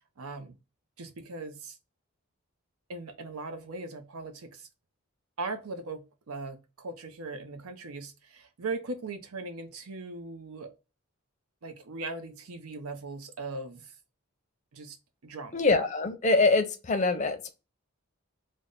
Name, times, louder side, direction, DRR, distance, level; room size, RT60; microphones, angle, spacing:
voice 1, 0.2-0.6 1.0-1.8 2.9-4.7 5.4-10.7 11.6-13.9 14.7-15.0 15.2-15.6, right 3 dB, 85° right, 0.6 m, -39 dB
voice 2, 15.5-17.5, left 3 dB, 35° left, 0.5 m, -24 dB
3.3 x 2.1 x 3.8 m
head